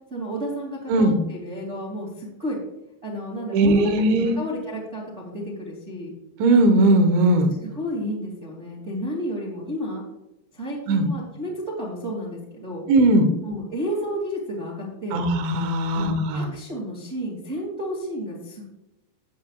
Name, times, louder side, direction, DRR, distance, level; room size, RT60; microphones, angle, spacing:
voice 1, 0.1-2.6 3.0-6.1 7.6-10.0 10.5-12.8 13.4-15.2 15.9-18.7, equal, 20° right, -3 dB, 2.0 m, -31 dB
voice 2, 3.5-4.4 6.4-7.5 10.9-11.1 12.9-13.3 15.1-16.5, right 2 dB, 85° right, 6 dB, 3.5 m, -18 dB
15.0 x 9.6 x 2.4 m, 0.93 s
omnidirectional pair, 5.1 m